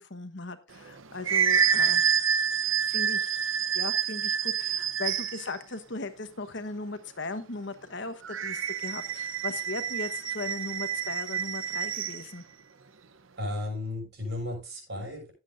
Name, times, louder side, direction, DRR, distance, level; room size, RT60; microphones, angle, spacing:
voice 1, 0.0-2.0 2.5-12.4, left 3 dB, 55° left, 10 dB, 1.2 m, -38 dB
sound 1, 0.8-5.5 8.2-12.2, right 7 dB, 70° right, 0.8 m, -28 dB
voice 2, 13.4-15.3, left 2 dB, 50° right, 0 dB, 6.7 m, -34 dB
16.0 x 8.5 x 2.6 m, 0.29 s
head